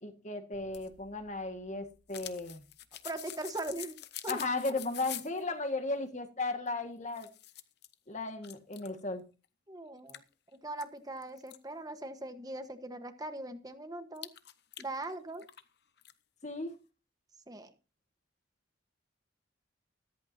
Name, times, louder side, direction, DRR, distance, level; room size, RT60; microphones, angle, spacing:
voice 1, 0.0-2.6 4.3-7.3 8.1-9.2 16.4-16.7, left 2 dB, 40° left, 1.8 m, -35 dB
sound 1, 0.5-5.4 6.7-6.8 7.1-7.9 8.4-9.0 9.4-9.5 10.1-11.6 14.2-15.7 16.0-16.1, left 13 dB, 55° left, 1.0 m, -46 dB
voice 2, 3.0-4.0 4.2-4.4 9.7-10.2 10.6-14.3 14.8-15.5 17.5-17.7, right 2 dB, 20° right, 1.2 m, -40 dB
14.0 x 14.0 x 2.8 m
head